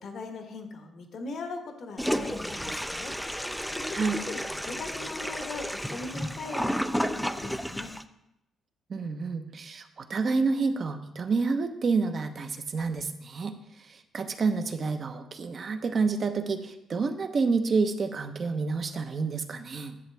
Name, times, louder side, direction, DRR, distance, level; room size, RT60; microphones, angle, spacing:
voice 1, 0.0-3.1 3.7-4.4 4.7-7.9, left 3 dB, 60° left, 4 dB, 1.4 m, -40 dB
Toilet flush, 2.0-8.0, equal, ahead, 0.5 m, -32 dB
voice 2, 8.9-13.5 13.8-20.0, right 4 dB, 45° right, 7 dB, 0.9 m, -29 dB
11.0 x 7.3 x 3.4 m, 0.86 s
cardioid pair, 90°, 0 cm